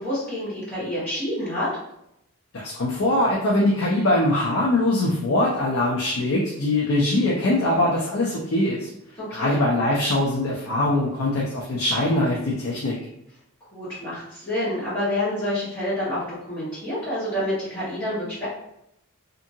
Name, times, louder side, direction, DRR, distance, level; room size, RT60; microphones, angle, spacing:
voice 1, 0.0-1.7 9.2-9.6 13.7-18.5, left 1 dB, 20° left, -15 dB, 1.1 m, -28 dB
voice 2, 2.5-8.9 9.3-13.0, left 1 dB, 70° left, -3 dB, 0.5 m, -22 dB
2.7 x 2.6 x 2.6 m, 0.79 s
head